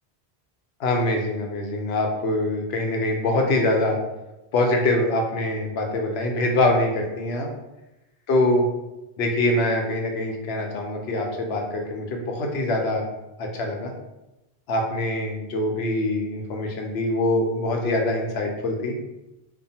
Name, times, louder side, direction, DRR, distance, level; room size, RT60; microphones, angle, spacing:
voice 1, 0.8-4.0 4.5-7.5 8.3-8.7 9.2-13.1 13.4-13.9 14.7-18.9, left 1 dB, 85° left, 1 dB, 0.8 m, -24 dB
2.6 x 2.0 x 2.7 m, 0.96 s
omnidirectional pair, 1.0 m